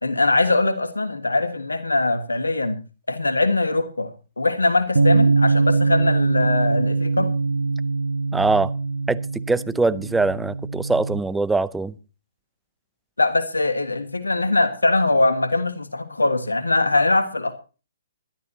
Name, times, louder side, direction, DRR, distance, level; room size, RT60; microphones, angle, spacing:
voice 1, 0.0-2.8 3.1-7.3 13.2-17.6, left 2 dB, 85° left, 1.5 m, -22 dB
Bass guitar, 5.0-11.2, right 4 dB, 80° right, 0.7 m, -22 dB
voice 2, 8.3-8.7 9.1-11.9, right 3 dB, 5° right, 0.6 m, -22 dB
21.0 x 12.0 x 2.8 m
figure-of-eight pair, 130°, 0 cm